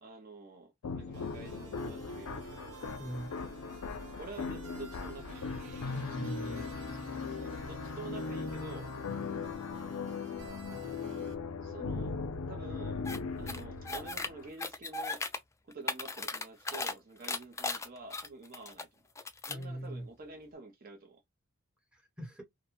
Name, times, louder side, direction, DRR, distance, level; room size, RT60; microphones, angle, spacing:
voice 1, 0.0-2.8 4.2-5.5 7.6-8.9 11.6-12.2 12.5-13.0 13.3-15.3 15.7-18.9 19.5-21.2, right 3 dB, 40° right, 0.5 m, -48 dB
sound 1, 0.8-14.5, left 4 dB, 85° left, 0.5 m, -39 dB
sound 2, 1.1-11.3, right 3 dB, 85° right, 1.1 m, -52 dB
voice 2, 3.0-3.3 5.9-6.6 19.5-20.1 21.9-22.4, right 1 dB, 5° right, 1.0 m, -41 dB
sound 3, 13.0-13.2 13.5-14.3 14.6-15.4 15.7-16.9 17.2-18.8 19.1-19.6, left 3 dB, 15° left, 0.3 m, -36 dB
2.4 x 2.2 x 2.9 m
head